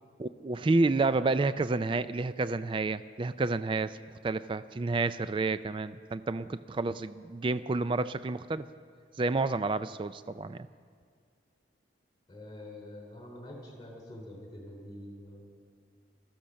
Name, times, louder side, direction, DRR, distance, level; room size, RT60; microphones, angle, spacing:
voice 1, 0.2-4.0 4.2-8.7 9.2-10.7, right 3 dB, 25° right, 14 dB, 0.3 m, -30 dB
voice 2, 12.3-15.5, left 1 dB, 20° left, 0 dB, 3.7 m, -46 dB
16.0 x 13.5 x 6.4 m, 2.1 s
head